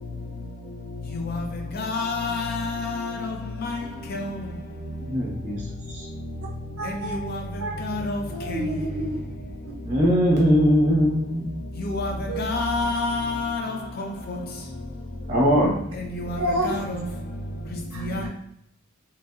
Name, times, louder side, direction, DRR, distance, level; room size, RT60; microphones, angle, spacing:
voice 1, 1.7-3.1 3.6-3.7 4.1-4.3 7.1-7.4 7.8-8.2 11.8-12.1 12.4-14.1 16.3-16.4 16.6-16.8 18.1-18.2, left 3 dB, 45° left, 0.5 m, -27 dB
voice 2, 3.8-4.2 6.8-7.2 7.6-7.7 8.3-9.3 12.3-12.4 16.4-16.9 17.9-18.3, right 1 dB, 70° right, 0.5 m, -29 dB
voice 3, 5.0-5.6 5.9-6.1 9.8-11.5 15.3-15.8, equal, 35° right, 0.9 m, -20 dB
2.9 x 2.6 x 2.4 m
head